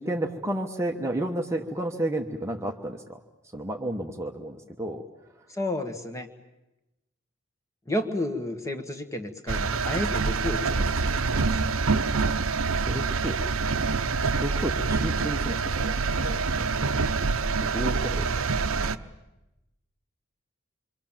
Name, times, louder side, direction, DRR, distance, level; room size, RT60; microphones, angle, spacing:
voice 1, 0.0-3.2 3.5-5.0 12.8-13.4 14.4-16.9 17.6-18.5, right 1 dB, 15° right, 2 dB, 1.1 m, -32 dB
voice 2, 5.5-6.3 7.8-11.6 14.3-14.4, left 1 dB, 15° left, 7 dB, 1.7 m, -32 dB
sound 1, 9.5-18.9, right 4 dB, 80° right, 0.9 m, -26 dB
27.0 x 24.5 x 7.4 m, 0.98 s
head